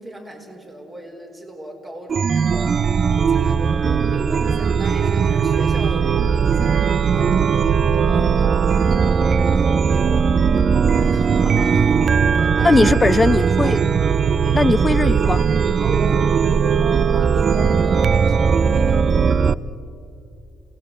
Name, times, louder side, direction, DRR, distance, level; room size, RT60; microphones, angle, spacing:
voice 1, 0.0-2.8 3.1-10.3 10.9-11.6 12.4-13.0 14.4-14.7 15.8-19.3, right 1 dB, 30° right, 1 dB, 5.2 m, -38 dB
Chime, 2.1-19.5, right 6 dB, 50° right, 0.6 m, -18 dB
voice 2, 11.5-12.1 12.6-13.8 14.5-15.4, left 3 dB, 20° left, 16 dB, 0.7 m, -19 dB
30.0 x 17.5 x 8.2 m, 2.8 s
cardioid pair, 90°, 0 cm